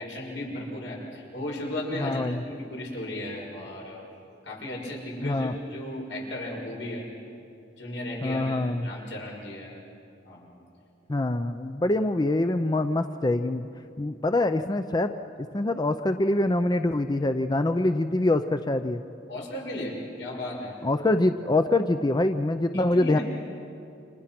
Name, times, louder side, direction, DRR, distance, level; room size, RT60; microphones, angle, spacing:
voice 1, 0.0-4.2 4.4-7.1 7.8-9.8 10.2-10.5 19.3-20.8 22.7-23.2, left 1 dB, 80° left, -2 dB, 6.4 m, -35 dB
voice 2, 2.0-2.4 5.2-5.5 8.2-8.9 11.1-13.7 14.0-15.1 15.5-19.0 20.8-23.2, left 2 dB, 25° left, 9 dB, 0.6 m, -24 dB
29.5 x 26.5 x 5.9 m, 2.6 s
head